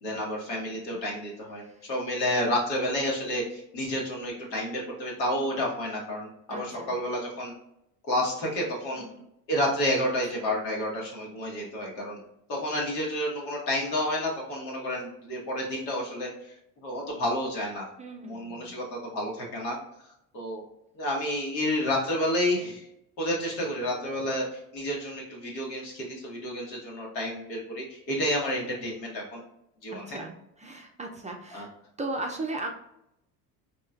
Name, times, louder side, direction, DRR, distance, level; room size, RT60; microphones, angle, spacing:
voice 1, 0.0-7.5 8.1-9.1 9.5-12.2 12.5-16.3 16.8-17.8 18.2-19.8 20.3-20.6 20.9-22.9 23.2-29.4 29.8-30.2 31.5-31.7, left 1 dB, 85° left, -2 dB, 1.4 m, -30 dB
voice 2, 1.6-1.9 6.5-6.9 8.9-9.3 10.2-10.3 18.0-18.7 29.9-31.7 32.0-32.7, right 2 dB, 15° right, 1 dB, 0.4 m, -37 dB
4.2 x 2.9 x 2.4 m, 0.81 s
hypercardioid pair, 70°, 49 cm